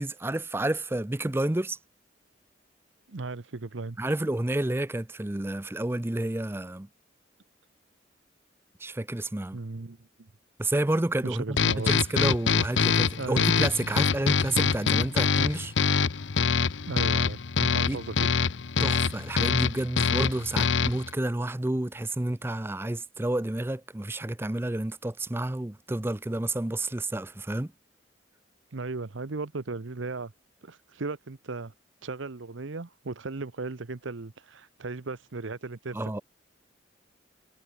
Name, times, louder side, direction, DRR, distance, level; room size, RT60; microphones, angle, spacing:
voice 1, 0.0-1.8 4.0-6.9 8.8-9.6 10.6-15.7 17.9-18.0 18.8-27.7 35.9-36.2, right 1 dB, 10° right, 0.5 m, -30 dB
voice 2, 3.1-4.0 9.5-10.3 11.2-11.9 13.2-13.5 16.9-18.3 28.7-30.3 30.6-31.7 32.0-36.2, right 3 dB, 75° right, 0.9 m, -36 dB
sound 1, 11.6-21.1, left 5 dB, 70° left, 0.7 m, -25 dB
head